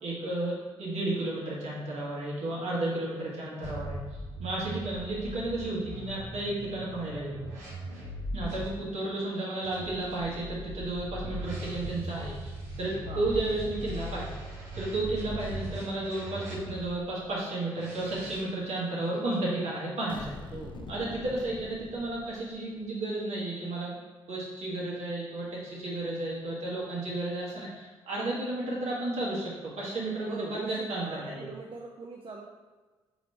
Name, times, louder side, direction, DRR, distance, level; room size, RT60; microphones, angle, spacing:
voice 1, 0.0-4.0 4.4-7.4 8.3-14.4 14.7-20.3 20.9-24.0 24.3-31.5, right 2 dB, 60° right, -5 dB, 1.5 m, -33 dB
sound 1, 3.6-8.7 9.6-17.0 17.7-18.4, equal, 75° right, 1.0 m, -39 dB
sound 2, 20.1-22.9, left 3 dB, 40° left, 0.5 m, -44 dB
voice 2, 20.5-21.0 30.3-32.5, right 3 dB, 45° right, 0 dB, 0.5 m, -41 dB
5.0 x 3.0 x 3.3 m, 1.3 s
hypercardioid pair, 45°, 13 cm